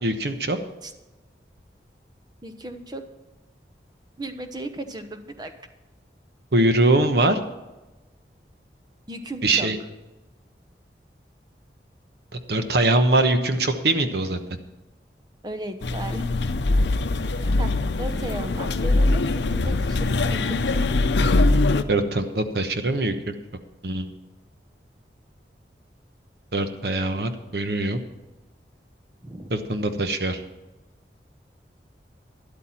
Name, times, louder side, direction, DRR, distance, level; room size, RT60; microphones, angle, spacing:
voice 1, 0.0-0.6 6.5-7.4 9.4-9.8 12.5-14.4 21.9-23.4 23.8-24.1 26.5-28.0 29.5-30.4, right 2 dB, 70° right, 8 dB, 1.1 m, -22 dB
voice 2, 2.4-3.0 4.2-5.5 9.1-9.7 15.4-16.3 17.4-20.8 29.2-29.5, right 1 dB, 25° right, 8 dB, 0.9 m, -36 dB
sound 1, 15.8-21.8, left 2 dB, 85° left, 0.6 m, -22 dB
12.5 x 11.0 x 4.4 m, 1.1 s
head